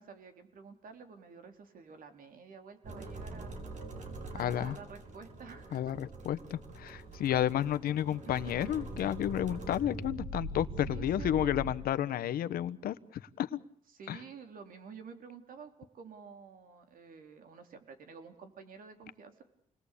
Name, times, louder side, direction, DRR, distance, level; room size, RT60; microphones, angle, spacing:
voice 1, 0.0-3.6 4.3-5.9 8.4-8.8 10.9-11.5 13.9-19.4, right 6 dB, 70° right, 6 dB, 3.8 m, -50 dB
sound 1, 2.8-11.7, right 1 dB, 55° right, 4.9 m, -43 dB
voice 2, 4.4-4.8 5.7-13.6 14.1-14.2, left 11 dB, 85° left, 13 dB, 1.1 m, -32 dB
29.0 x 20.5 x 8.5 m, 0.67 s
cardioid pair, 100°, 15 cm